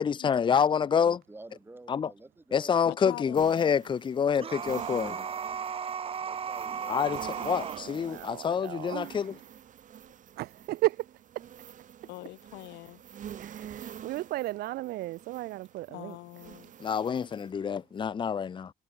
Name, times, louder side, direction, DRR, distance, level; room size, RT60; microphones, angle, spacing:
voice 1, 0.0-1.2 1.9-2.1 2.5-5.2 6.9-9.4 16.8-18.7, left 7 dB, 30° left, 0.7 m, -27 dB
voice 2, 0.9-3.7 6.2-7.0, right 2 dB, 15° right, 5.0 m, -50 dB
voice 3, 2.8-3.7 12.0-13.0 15.9-16.7, left 19 dB, 85° left, 1.0 m, -43 dB
sound 1, 3.4-17.5, right 9 dB, 50° right, 2.4 m, -48 dB
sound 2, 4.4-7.8, right 7 dB, 35° right, 0.9 m, -35 dB
voice 4, 6.9-9.4 10.4-11.1 11.4-11.5 13.3-16.2, right 17 dB, 70° right, 0.5 m, -35 dB
cardioid pair, 110°, 17 cm